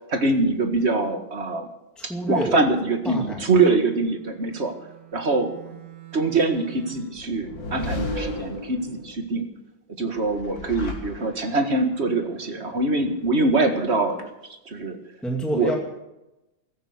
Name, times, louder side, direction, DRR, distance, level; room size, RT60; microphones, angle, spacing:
voice 1, 0.1-1.7 2.0-4.7 5.1-5.6 6.1-9.4 10.0-14.3 14.7-15.0 15.5-15.7, right 3 dB, 35° right, 6 dB, 1.9 m, -23 dB
voice 2, 2.0-2.6 3.0-3.4 15.2-15.8, right 1 dB, ahead, 1 dB, 2.3 m, -28 dB
Bowed string instrument, 3.8-7.2, right 13 dB, 65° right, 5.6 m, -45 dB
sound 1, 7.1-9.1 10.2-11.7, left 2 dB, 90° left, 3.4 m, -33 dB
15.5 x 14.0 x 6.5 m, 0.94 s
omnidirectional pair, 2.0 m